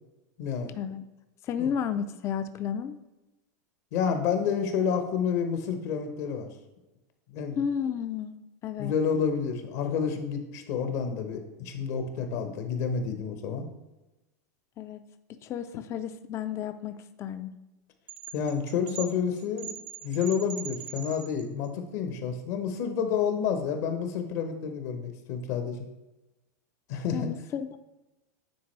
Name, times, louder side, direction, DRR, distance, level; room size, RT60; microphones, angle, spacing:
voice 1, 0.4-0.7 1.6-1.7 3.9-6.5 7.3-7.6 8.8-13.7 18.3-19.7 20.0-25.8 26.9-27.3, left 7 dB, 60° left, 6 dB, 0.9 m, -29 dB
voice 2, 1.4-3.0 7.6-8.4 8.6-8.9 14.8-15.0 15.3-17.5 27.1-27.7, left 8 dB, 30° left, 10 dB, 0.3 m, -32 dB
sound 1, 18.1-21.7, right 10 dB, 50° right, 0.5 m, -42 dB
9.4 x 3.7 x 3.2 m, 1.0 s
hypercardioid pair, 115°, 10 cm